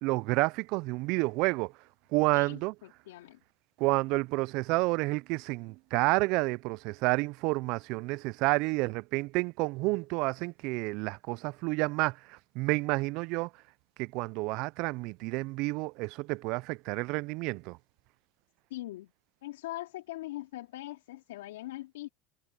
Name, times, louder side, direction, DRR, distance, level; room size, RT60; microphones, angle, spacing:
voice 1, 0.0-1.7 2.1-2.7 3.8-13.5 14.0-17.8, right 25 dB, 60° right, 0.4 m, -30 dB
voice 2, 2.3-3.4 18.7-19.1 19.4-22.1, left 16 dB, 80° left, 2.7 m, -41 dB
hypercardioid pair, 95°, 0 cm